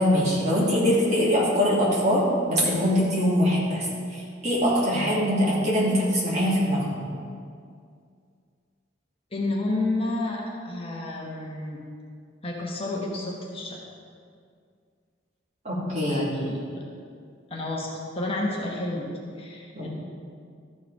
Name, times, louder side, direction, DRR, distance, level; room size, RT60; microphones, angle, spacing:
voice 1, 0.0-7.1 15.6-16.3 19.7-19.9, equal, 35° right, -6 dB, 2.3 m, -23 dB
voice 2, 9.3-11.8 12.4-13.8 16.1-16.8 17.5-17.9 18.2-19.1 19.4-19.9, left 2 dB, 30° left, -3 dB, 1.1 m, -30 dB
13.0 x 4.7 x 4.7 m, 2.2 s
head